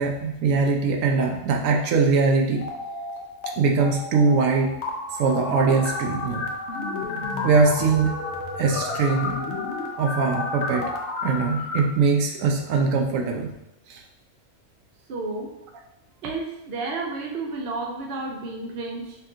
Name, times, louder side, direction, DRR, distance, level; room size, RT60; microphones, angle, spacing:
voice 1, 0.0-2.6 3.6-4.8 5.2-6.5 7.4-8.2 8.6-9.3 10.0-10.8 11.2-13.5 13.9-14.0, right 4 dB, 80° right, 1 dB, 1.0 m, -21 dB
sound 1, 2.6-3.5 3.8-11.8, left 3 dB, 65° left, 0.8 m, -31 dB
voice 2, 15.1-15.5 16.2-19.1, right 3 dB, 60° right, 1 dB, 0.7 m, -31 dB
5.3 x 2.5 x 2.5 m, 0.87 s
omnidirectional pair, 1.4 m